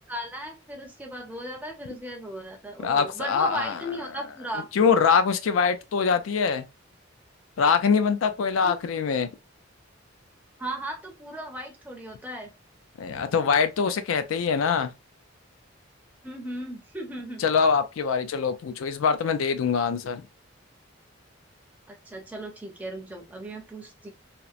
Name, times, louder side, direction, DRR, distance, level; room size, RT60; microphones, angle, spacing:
voice 1, 0.1-4.7 8.6-8.7 10.6-12.5 16.2-17.4 21.9-24.1, right 1 dB, 10° right, 0.5 m, -36 dB
voice 2, 2.8-3.8 4.7-6.7 7.6-9.3 13.0-14.9 17.4-20.3, left 6 dB, 85° left, 0.4 m, -23 dB
2.8 x 2.0 x 2.4 m
head